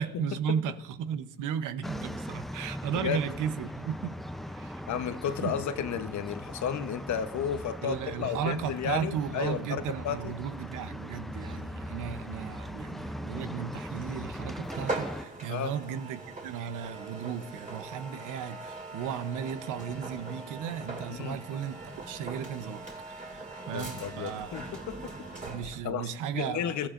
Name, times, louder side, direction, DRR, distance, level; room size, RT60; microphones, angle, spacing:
voice 1, 0.0-4.1 4.5-4.8 5.4-5.5 7.8-21.8 22.1-24.6 25.4-26.9, right 8 dB, 90° right, 0.8 m, -35 dB
sound 1, 1.8-15.3, equal, ahead, 0.5 m, -40 dB
voice 2, 2.9-3.3 4.9-10.3 15.5-15.7 21.1-21.4 23.7-25.1 25.8-26.9, left 8 dB, 70° left, 1.0 m, -33 dB
sound 2, 14.6-25.9, right 2 dB, 25° right, 2.7 m, -41 dB
27.0 x 14.5 x 2.6 m
cardioid pair, 90°, 30 cm